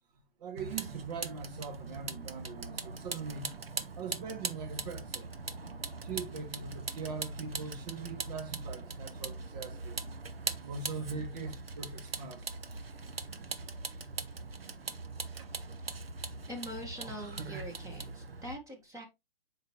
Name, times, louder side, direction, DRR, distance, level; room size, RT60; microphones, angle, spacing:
voice 1, 0.4-3.5 3.9-5.3 6.0-10.0 10.6-12.5 15.3-15.5, right 5 dB, 45° right, 2.1 m, -41 dB
Vehicle, 0.6-18.5, right 4 dB, 80° right, 1.0 m, -41 dB
voice 2, 16.5-19.1, equal, 10° right, 1.6 m, -43 dB
7.4 x 4.8 x 3.1 m
figure-of-eight pair, 120°, 29 cm